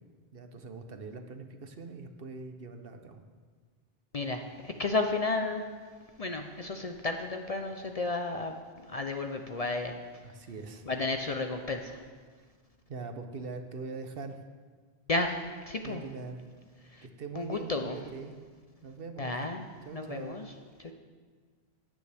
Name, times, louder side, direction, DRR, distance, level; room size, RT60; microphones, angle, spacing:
voice 1, 0.3-3.2 10.2-10.9 12.9-14.4 15.8-16.4 17.0-18.4 18.8-19.4 19.8-20.4, right 4 dB, 60° right, 7 dB, 1.0 m, -42 dB
voice 2, 4.1-5.7 6.2-8.6 8.8-9.9 10.9-12.0 15.1-16.0 16.8-17.0 17.4-18.0 19.2-19.7 19.9-20.5 20.8-20.9, left 3 dB, 40° left, 5 dB, 0.6 m, -32 dB
16.0 x 9.5 x 3.4 m, 1.5 s
omnidirectional pair, 1.1 m